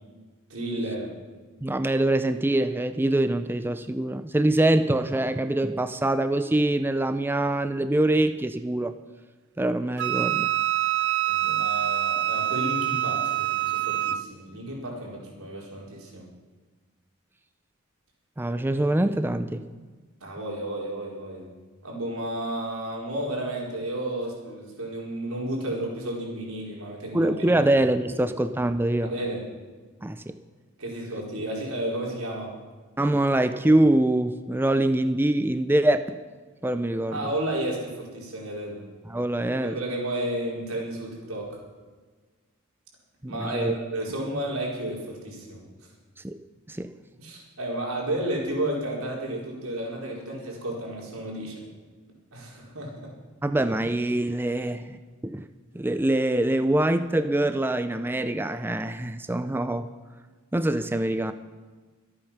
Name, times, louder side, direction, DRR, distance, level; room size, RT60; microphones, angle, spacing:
voice 1, 0.5-1.1 11.3-16.3 20.2-21.5 21.8-27.6 28.1-28.2 29.0-29.4 30.8-32.5 37.1-38.8 39.6-41.6 43.3-45.6 47.2-51.6 52.3-53.1, right 1 dB, 90° right, -2 dB, 4.7 m, -32 dB
voice 2, 1.6-8.9 9.6-10.5 18.4-19.6 27.1-29.1 30.0-30.4 33.0-36.2 36.6-37.3 39.1-39.8 43.2-43.7 46.2-46.4 46.7-46.9 53.4-55.5 55.7-59.9 60.5-61.3, right 1 dB, 10° right, 10 dB, 0.4 m, -24 dB
Wind instrument woodwind instrument, 10.0-14.2, right 11 dB, 60° right, 0.6 m, -25 dB
24.0 x 8.7 x 5.9 m, 1.4 s
head